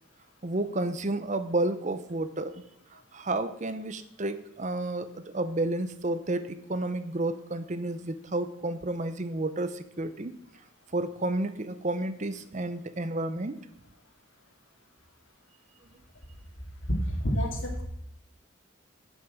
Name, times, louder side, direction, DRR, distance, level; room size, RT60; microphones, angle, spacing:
voice 1, 0.4-2.6 3.1-10.3 10.9-13.6, right 2 dB, 35° right, 11 dB, 0.6 m, -31 dB
voice 2, 16.9-17.8, equal, 65° left, 2 dB, 2.4 m, -28 dB
10.5 x 6.3 x 7.5 m, 0.75 s
head